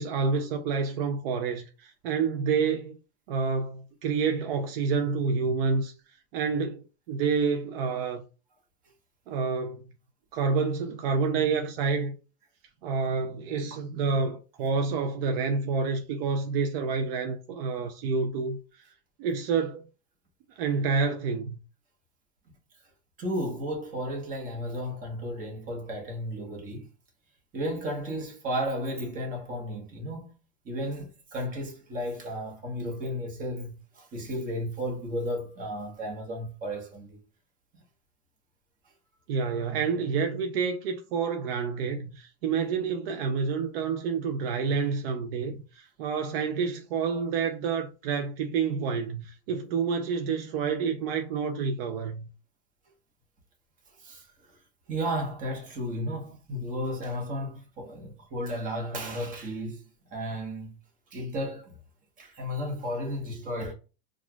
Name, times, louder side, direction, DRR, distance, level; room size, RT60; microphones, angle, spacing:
voice 1, 0.0-3.0 3.3-8.2 9.3-9.8 10.3-12.2 12.8-18.8 19.2-19.9 20.6-21.6 39.3-52.3, right 5 dB, 65° right, 0.5 m, -28 dB
voice 2, 23.2-26.9 27.5-30.3 30.6-37.2 54.0-54.3 54.9-60.7 61.1-61.8 62.2-63.7, equal, 25° right, 1.1 m, -33 dB
4.3 x 2.4 x 2.2 m
supercardioid pair, 150°, 32 cm